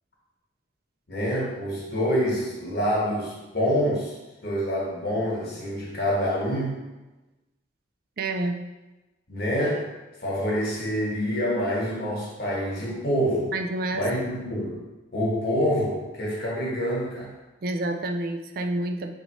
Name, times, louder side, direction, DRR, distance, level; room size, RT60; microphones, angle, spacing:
voice 1, 1.1-4.1 4.4-6.7 9.3-9.8 10.2-13.5 13.9-14.8 15.1-17.3, equal, 55° left, -4 dB, 1.2 m, -26 dB
voice 2, 8.2-8.6 13.5-14.1 17.6-19.1, right 2 dB, 55° right, 5 dB, 0.4 m, -28 dB
5.1 x 2.6 x 3.0 m, 1.1 s
head